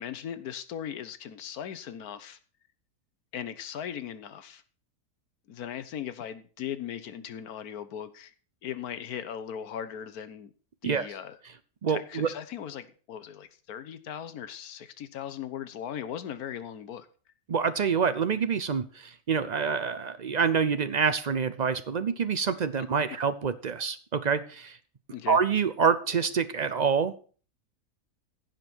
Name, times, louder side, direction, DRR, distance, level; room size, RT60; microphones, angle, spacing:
voice 1, 0.0-2.4 3.3-4.6 5.5-8.3 8.6-10.5 10.8-11.4 11.9-17.1 25.1-25.4, left 9 dB, 75° left, 1.4 m, -38 dB
voice 2, 11.8-12.3 17.5-24.8 25.3-27.1, right 6 dB, 60° right, 0.4 m, -26 dB
15.5 x 5.3 x 6.1 m
omnidirectional pair, 1.6 m